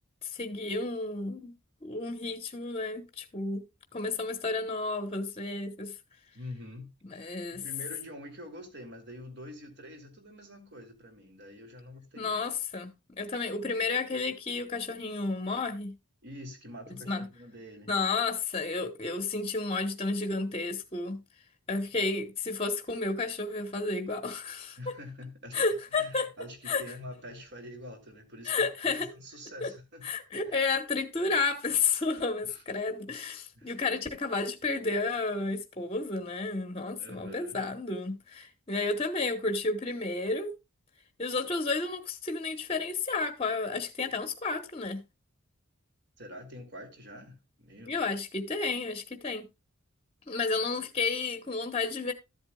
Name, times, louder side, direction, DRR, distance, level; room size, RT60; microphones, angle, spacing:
voice 1, 0.2-1.5 1.8-3.6 3.9-5.9 7.1-7.6 12.2-12.9 13.2-16.0 16.9-17.3 17.9-21.2 21.7-24.8 25.5-26.3 26.7-26.8 28.4-29.1 29.6-29.7 30.0-40.5 41.2-45.0 47.9-49.5 50.3-52.1, left 3 dB, 25° left, 1.0 m, -31 dB
voice 2, 6.3-12.4 16.2-17.9 24.8-25.6 25.9-30.1 30.4-30.6 32.5-32.6 33.5-33.8 37.0-37.6 46.2-48.1, left 1 dB, 50° right, 2.5 m, -46 dB
13.5 x 8.0 x 2.3 m
head